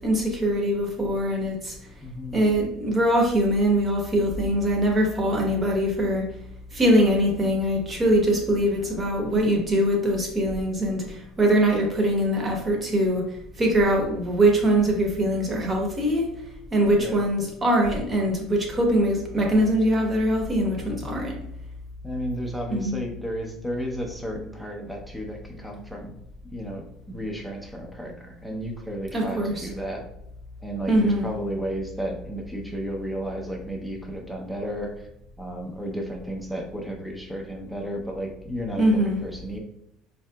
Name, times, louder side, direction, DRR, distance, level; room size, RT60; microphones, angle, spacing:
voice 1, 0.0-1.7 2.3-6.2 6.7-16.3 16.7-21.3 22.7-23.0 29.1-29.7 30.9-31.3 38.8-39.2, right 1 dB, 25° right, 1 dB, 1.0 m, -22 dB
voice 2, 2.0-2.4 8.8-8.9 12.6-12.7 17.0-17.2 21.0-21.3 22.0-26.2 26.5-30.1 30.6-35.1 35.4-39.6, equal, ahead, 1 dB, 0.6 m, -33 dB
4.6 x 2.8 x 2.2 m, 0.78 s
cardioid pair, 120°, 0 cm